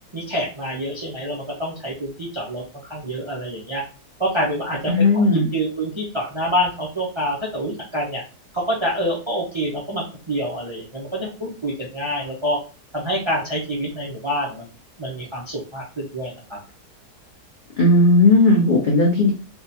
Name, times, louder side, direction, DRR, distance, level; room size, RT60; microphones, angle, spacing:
voice 1, 0.1-2.6 2.9-3.8 4.2-8.2 8.5-12.6 12.9-14.7 15.0-16.6, equal, 45° right, -4 dB, 0.3 m, -26 dB
voice 2, 4.9-5.5 17.8-19.3, left 2 dB, 75° left, -2 dB, 0.4 m, -15 dB
3.6 x 2.4 x 2.7 m, 0.34 s
omnidirectional pair, 1.8 m